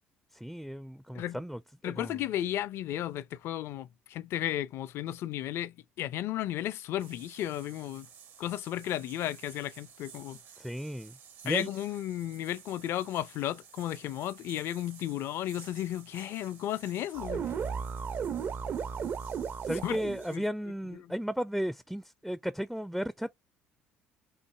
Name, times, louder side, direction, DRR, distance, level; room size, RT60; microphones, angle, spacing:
voice 1, 0.3-2.2 10.6-11.2 11.4-11.7 19.6-23.3, equal, ahead, 0.4 m, -35 dB
voice 2, 1.8-8.1 8.4-10.4 11.4-17.5 19.8-20.0 20.3-20.4, left 12 dB, 60° left, 0.5 m, -34 dB
sound 1, 7.0-20.4, right 8 dB, 65° right, 1.1 m, -54 dB
sound 2, 17.1-20.3, right 6 dB, 45° right, 0.6 m, -34 dB
5.5 x 2.6 x 3.4 m
hypercardioid pair, 60°, 5 cm